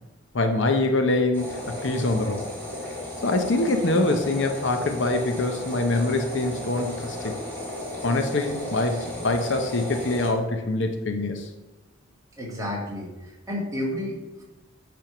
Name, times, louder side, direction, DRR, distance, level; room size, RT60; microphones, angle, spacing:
voice 1, 0.3-2.4 3.2-7.4 8.0-11.5, left 2 dB, 60° left, 6 dB, 0.7 m, -24 dB
sound 1, 1.3-10.3, left 1 dB, 10° left, 2.1 m, -34 dB
voice 2, 12.4-14.4, left 1 dB, 15° right, -4 dB, 1.9 m, -32 dB
8.9 x 3.5 x 5.8 m, 1.1 s
head